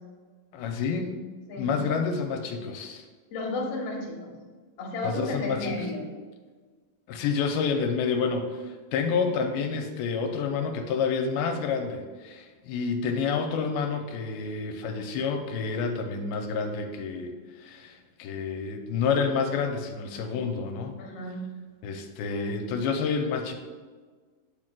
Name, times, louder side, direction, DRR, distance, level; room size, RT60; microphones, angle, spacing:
voice 1, 0.5-1.2 1.6-3.0 5.0-5.8 7.1-21.0 21.8-23.5, left 5 dB, 85° left, 4 dB, 2.4 m, -29 dB
voice 2, 3.3-4.3 4.8-6.1 21.0-21.4, left 2 dB, 60° left, -2 dB, 1.6 m, -33 dB
7.4 x 6.5 x 2.2 m, 1.4 s
omnidirectional pair, 4.2 m